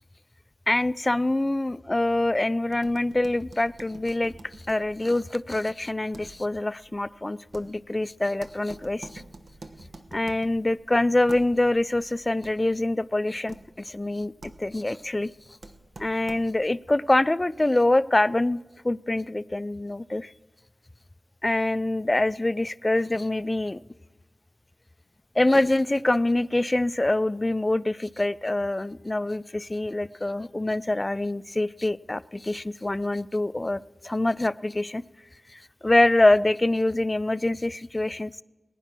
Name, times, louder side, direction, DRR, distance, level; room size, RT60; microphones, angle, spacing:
voice 1, 0.7-4.3 4.7-9.2 10.1-14.3 14.6-15.3 16.0-20.3 21.4-23.8 25.4-35.0 35.5-38.4, left 2 dB, 25° left, 18 dB, 0.4 m, -25 dB
sound 1, 2.7-16.8, right 2 dB, 80° right, 1.1 m, -49 dB
20.0 x 9.9 x 6.0 m, 1.3 s
wide cardioid pair, 60°, 0 cm